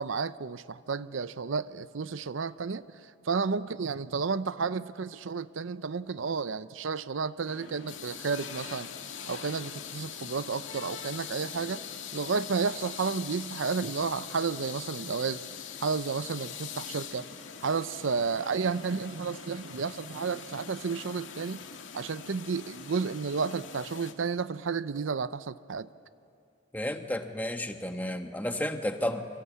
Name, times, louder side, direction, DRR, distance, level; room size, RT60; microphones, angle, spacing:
voice 1, 0.0-2.8 3.2-8.9 9.3-11.8 12.1-15.4 15.8-17.2 17.6-21.6 21.9-25.9, right 5 dB, 80° right, 15 dB, 0.6 m, -32 dB
sound 1, 7.5-24.1, left 7 dB, 80° left, 2.0 m, -42 dB
voice 2, 26.7-29.2, left 1 dB, 10° left, 6 dB, 1.3 m, -32 dB
29.0 x 23.5 x 8.4 m, 2.4 s
head